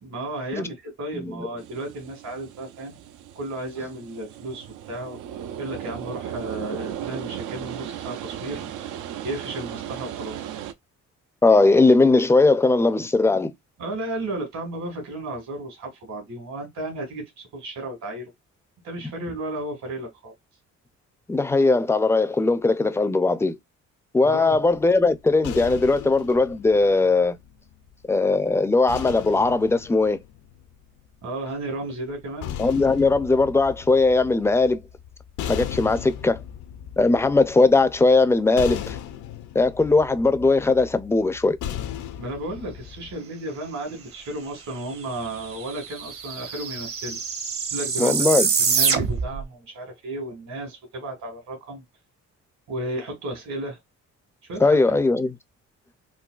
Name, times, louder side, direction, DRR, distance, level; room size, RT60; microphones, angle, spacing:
voice 1, 0.0-3.0 3.3-5.2 5.6-8.6 9.2-10.6 13.8-18.3 18.8-20.3 24.2-24.6 31.2-32.6 42.2-47.2 47.7-48.3 48.6-51.8 52.7-53.8 54.5-55.0, right 1 dB, 65° right, 1.8 m, -33 dB
voice 2, 1.1-1.5 11.4-13.5 21.3-23.6 24.1-27.4 28.1-30.2 32.6-34.8 35.5-36.4 37.0-39.0 39.5-41.6 48.0-48.5 54.6-55.3, left 3 dB, 10° left, 0.4 m, -19 dB
sound 1, 1.6-10.7, right 10 dB, 85° right, 0.5 m, -36 dB
sound 2, 24.6-27.9 28.9-31.1 32.1-43.2, left 10 dB, 75° left, 0.5 m, -37 dB
sound 3, 44.9-45.0 45.2-49.4, right 6 dB, 50° right, 0.8 m, -25 dB
3.8 x 2.2 x 2.3 m
cardioid pair, 90°, 30 cm